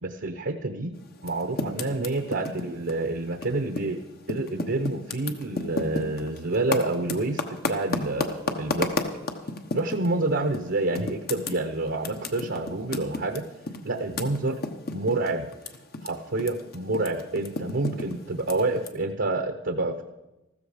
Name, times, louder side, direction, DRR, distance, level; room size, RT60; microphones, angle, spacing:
voice 1, 0.0-0.9 1.2-4.0 4.3-8.9 9.7-13.4 13.8-14.6 14.9-15.5 16.0-20.0, right 2 dB, 60° right, 7 dB, 0.8 m, -28 dB
Typing, 1.2-4.0 4.2-10.1 10.5-10.7 11.0-16.1 16.3-18.9, left 3 dB, 50° left, 1.1 m, -32 dB
14.0 x 13.5 x 5.0 m, 1.0 s
head